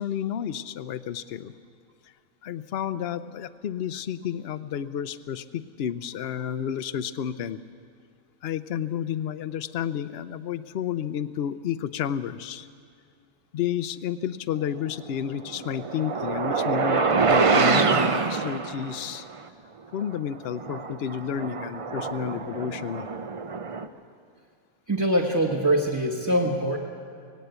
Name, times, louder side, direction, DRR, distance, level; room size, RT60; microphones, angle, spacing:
voice 1, 0.0-1.5 2.4-7.6 8.4-12.7 13.5-19.3 19.9-23.1, left 9 dB, 60° left, 14 dB, 0.7 m, -31 dB
sound 1, 15.2-19.2 20.0-20.1 20.6-23.9, right 4 dB, 45° right, 0.4 m, -25 dB
voice 2, 24.9-26.8, right 1 dB, 15° right, -2 dB, 1.2 m, -23 dB
18.5 x 17.5 x 8.1 m, 2.3 s
omnidirectional pair, 1.5 m